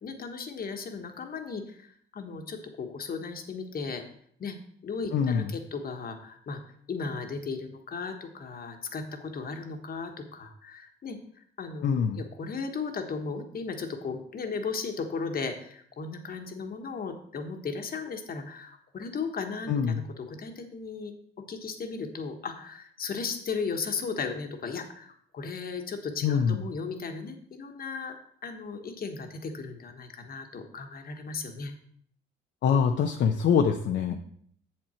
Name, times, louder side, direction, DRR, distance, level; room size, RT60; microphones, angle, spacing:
voice 1, 0.0-4.0 4.4-4.6 4.8-6.6 6.9-11.2 11.6-21.1 21.5-31.7 34.1-34.2, left 4 dB, 50° left, 5 dB, 1.3 m, -36 dB
voice 2, 5.1-5.5 11.8-12.2 19.7-20.0 26.2-26.6 32.6-34.2, left 7 dB, 65° left, 4 dB, 0.7 m, -24 dB
7.7 x 7.2 x 4.4 m, 0.63 s
cardioid pair, 90°, 20 cm